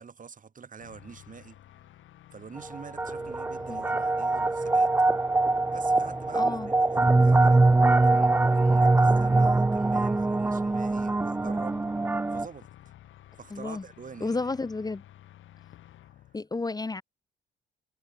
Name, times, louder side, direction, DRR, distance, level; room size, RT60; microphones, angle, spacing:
voice 1, 0.0-1.6 2.3-4.9 5.7-11.8 12.3-12.7 13.4-14.5, right 6 dB, 40° right, 7.2 m, -46 dB
sound 1, 0.8-16.4, left 13 dB, 80° left, 6.9 m, -52 dB
sound 2, 2.6-12.5, right 2 dB, 10° right, 0.4 m, -23 dB
voice 2, 6.3-6.7 13.5-13.8 14.2-15.0 16.3-17.0, left 3 dB, 20° left, 0.9 m, -32 dB
cardioid pair, 90°, 20 cm